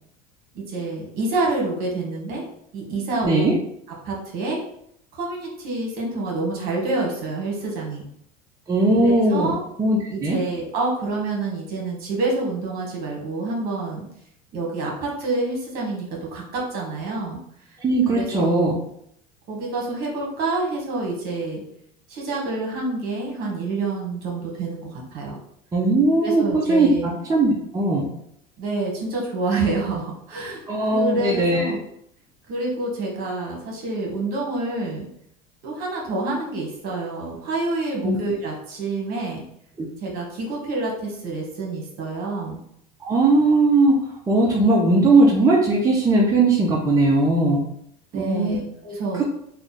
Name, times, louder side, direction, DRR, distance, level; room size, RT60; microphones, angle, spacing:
voice 1, 0.5-2.4 2.7-3.6 4.0-4.6 5.1-8.0 8.9-9.6 10.1-14.1 14.5-17.4 18.1-18.8 19.5-21.6 22.1-25.4 26.2-27.0 28.6-31.8 32.5-35.1 35.6-39.4 40.0-42.6 48.1-49.2, right 3 dB, 55° right, -1 dB, 1.4 m, -27 dB
voice 2, 3.2-3.5 8.7-9.5 9.8-10.4 17.8-18.7 25.7-28.1 30.7-31.7 38.0-38.2 39.8-39.9 43.0-44.0 44.3-47.6 48.1-48.6 49.1-49.2, right 2 dB, 20° right, -2 dB, 0.6 m, -19 dB
3.2 x 2.4 x 4.0 m, 0.71 s
supercardioid pair, 120°, 19 cm